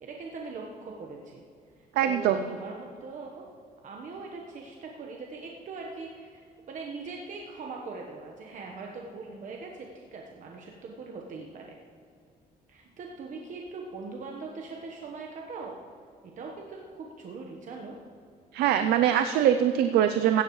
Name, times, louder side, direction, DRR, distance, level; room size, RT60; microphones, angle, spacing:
voice 1, 0.0-1.4 1.8-3.4 3.8-11.8 12.7-15.8 16.4-18.0, right 4 dB, 50° right, 0 dB, 1.3 m, -41 dB
voice 2, 2.0-2.4 18.5-20.4, right 10 dB, 90° right, 9 dB, 0.5 m, -23 dB
16.5 x 12.0 x 3.2 m, 2.4 s
cardioid pair, 110°, 16 cm